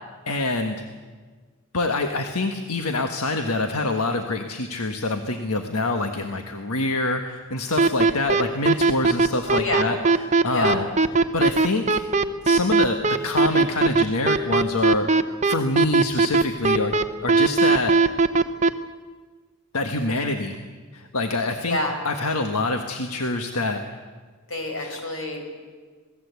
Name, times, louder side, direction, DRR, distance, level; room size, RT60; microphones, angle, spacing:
voice 1, 0.3-0.9 1.7-10.9 11.3-12.0 12.4-17.0 17.2-17.9 19.7-20.6 20.9-21.8 22.0-23.8 24.8-25.0, left 2 dB, 80° left, 5 dB, 1.4 m, -26 dB
sound 1, 7.8-18.7, right 4 dB, 30° right, 0.8 m, -18 dB
voice 2, 9.5-9.9 10.5-10.7 21.7-21.9 24.5-25.4, left 1 dB, 60° left, 3 dB, 5.4 m, -27 dB
27.0 x 18.0 x 8.2 m, 1.5 s
head